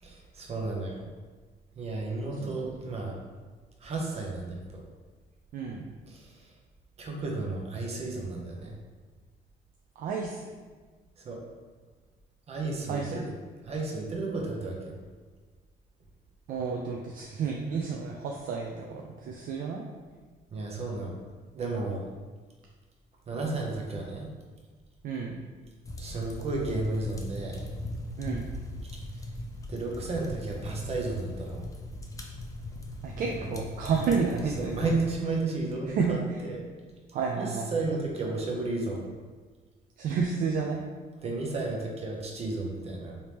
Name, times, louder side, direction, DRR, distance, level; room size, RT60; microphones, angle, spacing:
voice 1, 0.0-1.0 1.8-3.2 3.8-4.8 6.1-6.5 7.0-8.8 11.2-11.4 12.5-13.3 13.6-15.0 20.5-21.2 21.5-22.0 23.3-24.3 26.0-27.7 29.1-29.3 29.7-31.6 33.4-33.5 34.6-36.6 37.4-39.1 41.2-43.2, right 3 dB, 40° right, -1 dB, 0.8 m, -33 dB
voice 2, 5.5-5.9 10.0-10.5 12.9-13.2 16.5-19.8 25.0-25.4 28.2-28.5 33.0-34.8 35.9-36.4 37.1-37.7 40.0-40.8, right 5 dB, 55° right, 0 dB, 0.4 m, -31 dB
sound 1, 25.8-35.2, left 1 dB, 20° left, 0.4 m, -39 dB
3.4 x 2.8 x 3.0 m, 1.4 s
cardioid pair, 110°, 17 cm